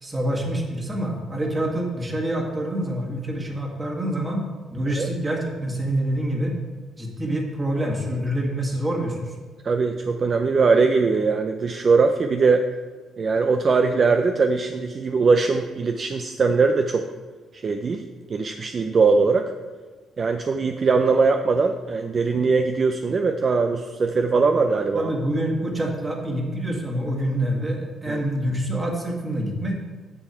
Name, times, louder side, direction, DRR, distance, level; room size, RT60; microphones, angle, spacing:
voice 1, 0.0-4.4 4.7-6.6 7.0-9.3 24.9-29.9, right 1 dB, 20° right, 1 dB, 1.9 m, -26 dB
voice 2, 9.6-12.7 13.2-17.0 17.5-18.0 18.3-19.5 20.2-25.1 28.1-28.2, right 4 dB, 45° right, 6 dB, 0.5 m, -21 dB
9.1 x 6.9 x 4.4 m, 1.4 s
cardioid pair, 90°, 0 cm